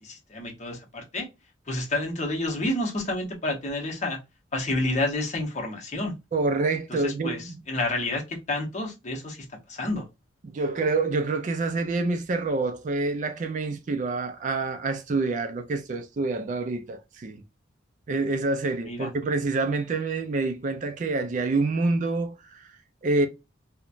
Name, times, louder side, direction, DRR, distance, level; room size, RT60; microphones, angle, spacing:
voice 1, 0.0-1.3 1.7-4.2 4.5-6.1 6.9-10.1 18.8-19.1, left 2 dB, 35° left, 0.8 m, -29 dB
voice 2, 6.3-7.5 10.4-17.4 18.1-22.7 23.0-23.3, right 3 dB, 40° right, 0.3 m, -27 dB
2.9 x 2.1 x 2.4 m
head